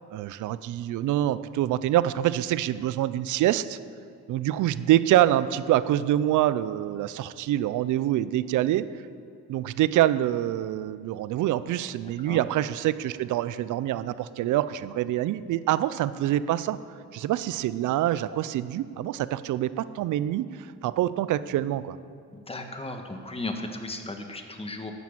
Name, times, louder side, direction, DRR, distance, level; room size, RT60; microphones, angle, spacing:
voice 1, 0.1-3.8 4.3-8.9 9.5-16.8 17.1-22.0, right 13 dB, 80° right, 15 dB, 0.6 m, -25 dB
voice 2, 22.3-24.9, left 2 dB, 20° left, 4 dB, 1.6 m, -35 dB
12.5 x 9.4 x 7.4 m, 2.4 s
cardioid pair, 90°, 30 cm